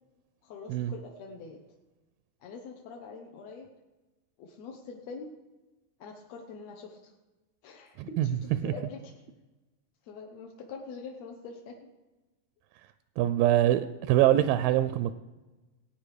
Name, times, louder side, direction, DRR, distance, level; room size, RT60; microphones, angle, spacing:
voice 1, 0.4-1.6 2.4-3.7 4.4-5.3 6.0-7.1 7.6-9.1 10.0-11.7, left 4 dB, 65° left, 1 dB, 1.8 m, -44 dB
voice 2, 13.2-15.1, right 13 dB, 85° right, 12 dB, 2.2 m, -24 dB
18.0 x 8.9 x 5.0 m, 1.1 s
omnidirectional pair, 4.0 m